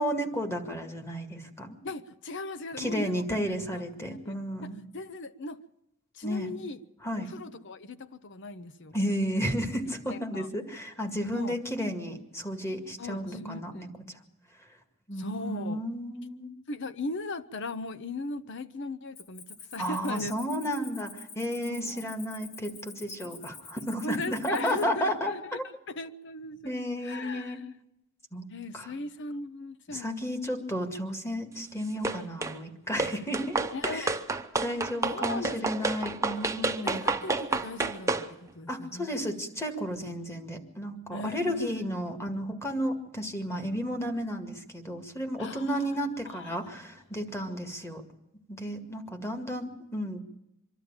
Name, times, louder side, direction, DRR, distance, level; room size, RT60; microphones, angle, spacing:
voice 1, 0.0-1.8 2.8-4.8 6.2-6.5 7.0-7.3 8.9-13.9 15.1-16.5 19.8-25.6 26.6-27.6 28.3-28.5 28.7-28.9 29.9-33.7 33.9-34.1 34.6-37.1 38.7-48.0 48.5-50.2, equal, 15° left, 2.0 m, -33 dB
voice 2, 1.8-3.4 3.7-5.6 6.1-6.8 7.2-9.0 10.1-10.5 11.3-11.6 13.0-13.9 15.2-15.8 16.7-20.3 21.7-22.1 24.0-25.6 25.9-26.7 27.0-27.6 28.5-30.3 33.7-34.1 35.0-35.9 36.8-39.2 41.1-41.9 45.4-45.9 46.3-46.6 47.3-47.6, left 2 dB, 60° left, 0.9 m, -38 dB
Cricket, 19.2-24.8, left 5 dB, 80° left, 1.9 m, -47 dB
sound 1, 32.0-32.6 33.0-38.3, right 3 dB, 15° right, 0.8 m, -30 dB
24.5 x 12.5 x 8.8 m
head